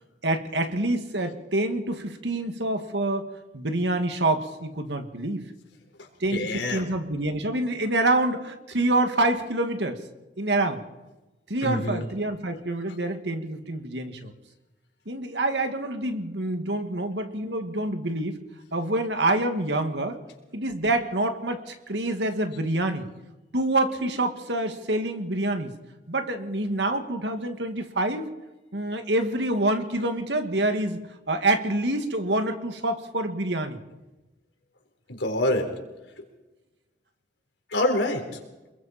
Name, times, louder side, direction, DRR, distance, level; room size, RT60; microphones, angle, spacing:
voice 1, 0.2-5.5 6.2-10.0 10.4-10.8 11.5-14.3 15.1-18.4 18.7-20.2 20.5-23.1 23.5-25.8 26.1-28.3 28.7-31.0 31.3-33.8, right 2 dB, 70° right, 6 dB, 2.2 m, -26 dB
voice 2, 6.0-6.9 11.6-12.1 35.1-35.7 37.7-38.2, left 1 dB, 80° left, 4 dB, 4.1 m, -26 dB
26.5 x 22.5 x 4.4 m, 1.1 s
head